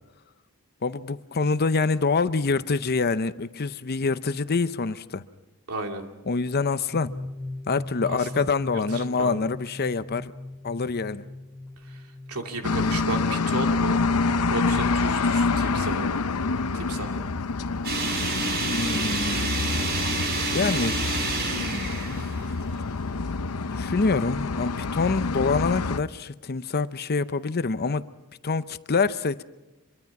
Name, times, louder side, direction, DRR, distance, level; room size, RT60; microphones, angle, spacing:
voice 1, 0.8-5.2 6.3-7.1 7.7-10.3 10.6-11.2 18.6-19.5 20.5-21.0 23.7-28.1 28.4-29.4, left 4 dB, 45° left, 13 dB, 0.7 m, -26 dB
voice 2, 5.7-6.0 8.1-8.4 8.7-9.4 12.3-14.0 14.5-16.2 16.7-17.3, right 2 dB, 80° right, 3 dB, 2.6 m, -34 dB
sound 1, 6.9-15.3, left 2 dB, ahead, 4.4 m, -40 dB
sound 2, 12.6-26.0, left 4 dB, 85° left, 0.7 m, -27 dB
sound 3, 17.8-23.0, right 3 dB, 45° right, 3.9 m, -29 dB
25.0 x 23.0 x 6.0 m, 1.1 s
head